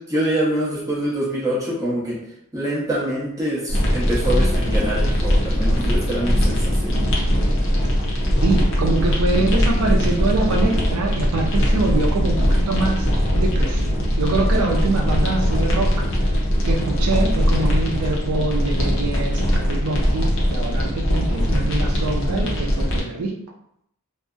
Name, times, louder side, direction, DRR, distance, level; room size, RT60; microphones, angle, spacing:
voice 1, 0.0-2.2 2.5-7.1, right 1 dB, 15° right, -7 dB, 0.7 m, -25 dB
sound 1, 3.7-23.0, equal, 60° left, 0.5 m, -20 dB
voice 2, 8.4-13.1 13.4-16.1 16.7-23.3, right 2 dB, 85° right, 1 dB, 0.4 m, -24 dB
2.6 x 2.0 x 2.3 m, 0.72 s
head